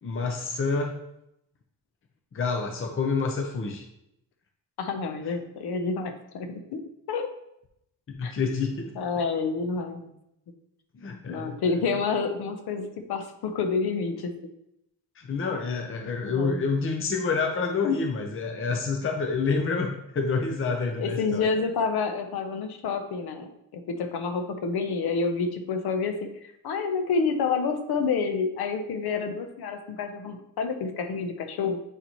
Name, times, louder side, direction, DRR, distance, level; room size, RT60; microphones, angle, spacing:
voice 1, 0.0-0.9 2.3-3.8 8.1-8.9 10.9-11.6 15.2-21.5, left 4 dB, 35° left, 4 dB, 0.7 m, -28 dB
voice 2, 4.8-6.8 7.1-7.3 8.2-8.3 8.9-10.1 11.3-14.5 16.2-16.6 21.0-31.8, left 4 dB, 85° left, 7 dB, 0.9 m, -29 dB
7.9 x 3.9 x 3.0 m, 0.81 s
cardioid pair, 105°, 37 cm